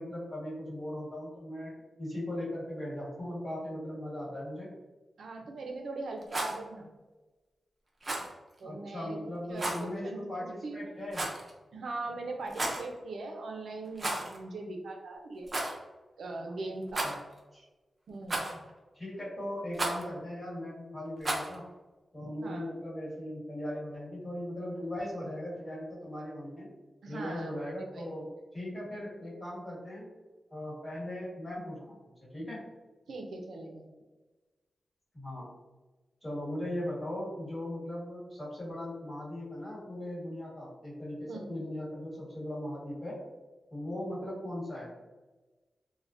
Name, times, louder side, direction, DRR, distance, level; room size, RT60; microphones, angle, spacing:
voice 1, 0.0-4.7 8.6-11.3 17.0-17.2 17.5-17.6 18.9-21.6 22.1-26.7 27.1-30.1 30.5-32.6 35.1-35.5 36.2-43.2 43.7-44.9, left 1 dB, 25° left, -7 dB, 1.4 m, -38 dB
voice 2, 5.2-6.9 8.6-9.2 9.5-10.9 11.7-15.5 16.2-17.1 18.1-18.6 22.4-22.7 27.0-27.5 27.9-28.1 33.1-33.9 41.2-41.5, right 2 dB, 85° right, 2 dB, 0.4 m, -40 dB
Rattle, 6.2-6.6 8.0-8.3 9.6-9.8 11.1-11.5 12.4-12.9 13.9-14.4 14.6-14.7 15.5-15.7 16.9-17.4 18.3-18.7 19.7-20.0 21.2-21.5, right 2 dB, 30° right, 0.5 m, -33 dB
3.4 x 2.1 x 2.5 m, 1.2 s
wide cardioid pair, 135°, 0 cm